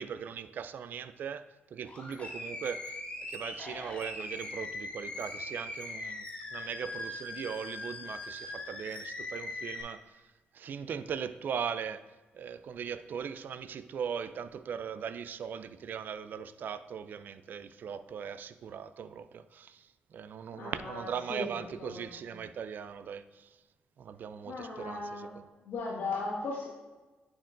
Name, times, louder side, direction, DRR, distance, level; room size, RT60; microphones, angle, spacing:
voice 1, 0.0-6.3 6.5-10.2 10.5-23.6 24.0-25.3, right 7 dB, 65° right, 0.3 m, -39 dB
Animal, 1.8-9.8, left 2 dB, 35° left, 1.7 m, -41 dB
voice 2, 20.6-21.5 21.8-22.3 24.5-25.3 25.6-26.7, left 3 dB, 80° left, 1.7 m, -37 dB
9.8 x 4.3 x 2.6 m
cardioid pair, 85°, 4 cm